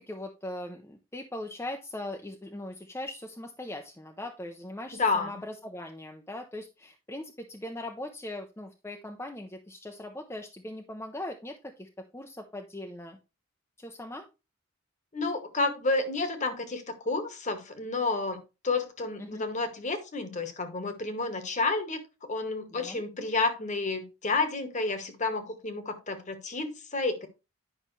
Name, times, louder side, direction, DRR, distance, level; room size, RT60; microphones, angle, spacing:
voice 1, 0.0-13.2 13.8-14.3 19.2-19.4 22.7-23.0, left 1 dB, 10° left, 3 dB, 0.6 m, -40 dB
voice 2, 5.0-5.4 15.1-22.0 22.3-27.3, left 3 dB, 35° left, 8 dB, 1.2 m, -30 dB
10.0 x 5.5 x 3.2 m, 0.27 s
head